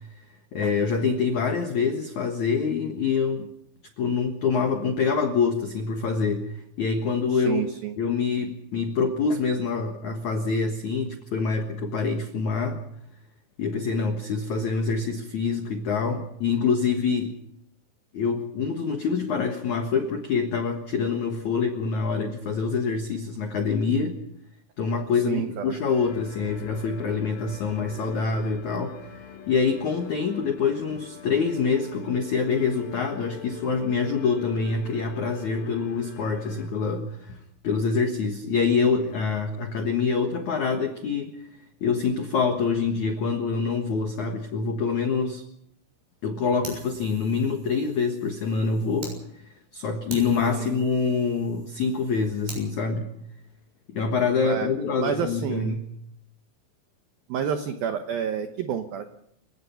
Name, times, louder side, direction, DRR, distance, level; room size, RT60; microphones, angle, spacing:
voice 1, 0.5-3.5 4.0-6.5 6.8-7.6 8.0-12.8 13.6-17.4 18.1-24.2 24.8-29.0 29.5-37.4 37.6-41.4 41.8-45.4 46.2-49.2 49.7-53.1 53.9-55.8, left 5 dB, 80° left, 5 dB, 1.6 m, -25 dB
voice 2, 7.3-7.9 25.3-25.7 50.6-50.8 54.4-54.7 55.0-55.7 57.3-59.1, right 8 dB, 85° right, 7 dB, 2.0 m, -29 dB
sound 1, 25.9-36.7, left 7 dB, 55° left, 3.2 m, -43 dB
Fire, 46.6-49.2 49.6-49.7 50.1-52.6, right 3 dB, 50° right, 8.7 m, -43 dB
28.5 x 17.0 x 5.8 m, 0.75 s
omnidirectional pair, 5.9 m